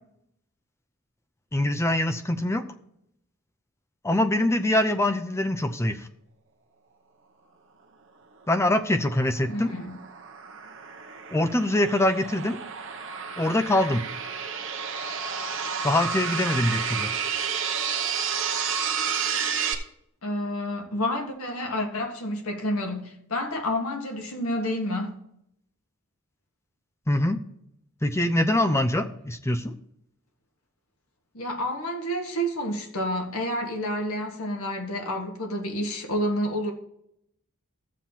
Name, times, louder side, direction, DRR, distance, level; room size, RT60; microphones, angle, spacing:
voice 1, 1.5-2.6 4.0-6.1 8.5-9.7 11.3-12.6 13.4-14.0 15.8-17.1 27.1-27.4 28.0-29.7, left 1 dB, 10° left, 0.5 m, -24 dB
sound 1, 8.9-19.7, right 6 dB, 55° right, 0.9 m, -31 dB
voice 2, 9.5-10.0 20.2-25.2 31.3-36.7, equal, 80° left, 1.5 m, -29 dB
13.5 x 7.3 x 2.9 m
head